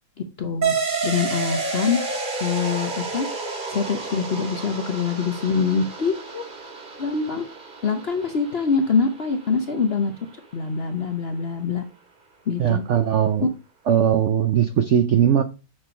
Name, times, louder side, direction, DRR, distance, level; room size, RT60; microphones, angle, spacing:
voice 1, 0.4-0.7 1.0-2.0 2.4-3.3 3.7-6.4 7.0-7.5 7.8-10.1 10.5-11.8 12.5-12.8 13.4-13.5, left 5 dB, 50° left, 6 dB, 0.7 m, -24 dB
sound 1, 0.6-9.6, right 4 dB, 30° right, 1.5 m, -30 dB
voice 2, 12.6-13.5 13.9-15.4, right 9 dB, 75° right, 10 dB, 0.6 m, -19 dB
7.8 x 4.6 x 5.0 m, 0.31 s
omnidirectional pair, 2.0 m